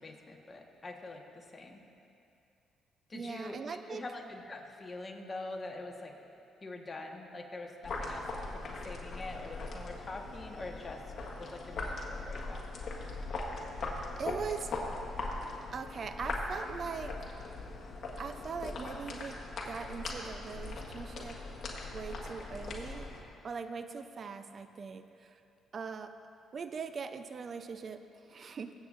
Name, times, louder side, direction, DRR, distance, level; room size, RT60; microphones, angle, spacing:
voice 1, 0.0-1.8 3.1-6.1 6.6-11.0 11.4-12.6, left 2 dB, 30° left, 1 dB, 1.4 m, -44 dB
voice 2, 3.1-4.0 14.2-14.7 15.7-17.2 18.2-21.4 21.9-23.1 23.4-25.4 25.7-26.2 26.5-28.7, right 5 dB, 45° right, 9 dB, 0.6 m, -41 dB
sound 1, 7.8-23.2, left 2 dB, 55° left, 1.6 m, -40 dB
22.0 x 8.1 x 2.6 m, 2.6 s
cardioid pair, 90°, 0 cm